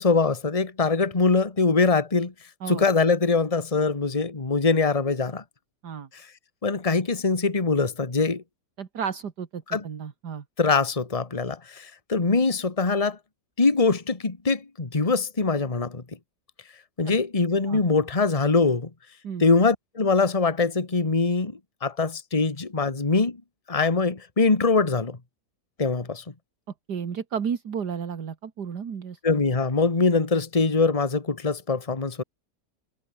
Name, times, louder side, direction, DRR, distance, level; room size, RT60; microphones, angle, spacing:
voice 1, 0.0-2.3 2.7-5.4 6.6-8.4 9.7-9.8 10.6-13.2 13.6-16.0 17.0-18.9 19.4-23.4 23.7-25.2 25.8-26.2 29.2-32.2, left 4 dB, 20° left, 1.8 m, -23 dB
voice 2, 8.8-10.4 17.7-17.8 19.2-19.4 26.9-29.2, right 7 dB, 70° right, 2.3 m, -32 dB
omnidirectional pair, 1.8 m